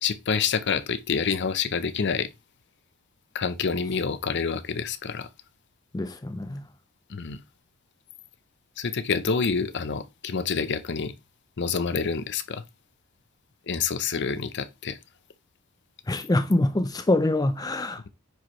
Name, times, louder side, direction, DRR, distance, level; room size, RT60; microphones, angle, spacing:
voice 1, 0.0-2.3 3.3-5.3 7.1-7.4 8.8-11.1 11.6-12.6 13.7-15.0, left 5 dB, 55° left, 0.6 m, -27 dB
voice 2, 5.9-6.6 16.1-18.1, left 2 dB, 20° left, 0.5 m, -25 dB
9.8 x 4.6 x 3.1 m
head